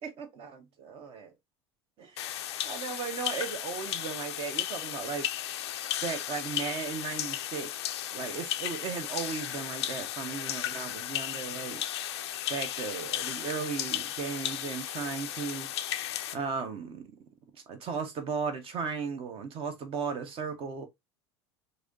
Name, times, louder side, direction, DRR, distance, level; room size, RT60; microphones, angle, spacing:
voice 1, 0.0-1.3 2.0-5.3 6.0-7.7 8.1-11.8 12.5-15.7 16.3-17.1 17.5-20.9, right 5 dB, 40° right, 1.1 m, -36 dB
sound 1, 2.2-16.4, left 12 dB, 70° left, 0.5 m, -35 dB
4.7 x 2.8 x 2.5 m
figure-of-eight pair, 75°, 14 cm